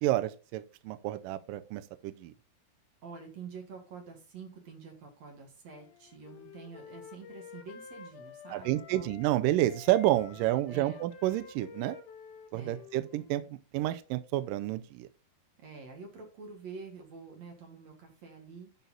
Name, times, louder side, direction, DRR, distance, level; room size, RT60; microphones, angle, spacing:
voice 1, 0.0-2.3 8.5-12.0 12.5-15.1, right 15 dB, 80° right, 2.1 m, -30 dB
voice 2, 3.0-9.1 10.4-11.0 12.5-12.9 15.6-18.9, right 5 dB, 55° right, 2.3 m, -47 dB
Wind instrument woodwind instrument, 5.8-9.3 9.7-13.4, left 6 dB, 80° left, 2.6 m, -50 dB
11.0 x 4.2 x 3.9 m
omnidirectional pair, 4.5 m